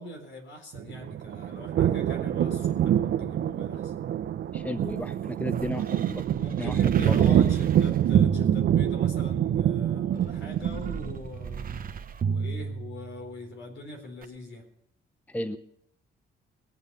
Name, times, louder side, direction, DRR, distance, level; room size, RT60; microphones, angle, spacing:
voice 1, 0.0-3.9 6.4-11.7 12.2-14.6, left 1 dB, 70° left, 4 dB, 4.0 m, -42 dB
sound 1, 0.7-11.1, right 10 dB, 65° right, 0.9 m, -25 dB
voice 2, 4.5-6.2 6.5-7.4 15.3-15.6, left 1 dB, 5° left, 11 dB, 0.8 m, -34 dB
sound 2, 4.5-9.4 10.1-13.5 14.2-14.3, right 5 dB, 45° right, 1.1 m, -35 dB
21.5 x 8.1 x 5.4 m, 0.72 s
cardioid pair, 90°, 20 cm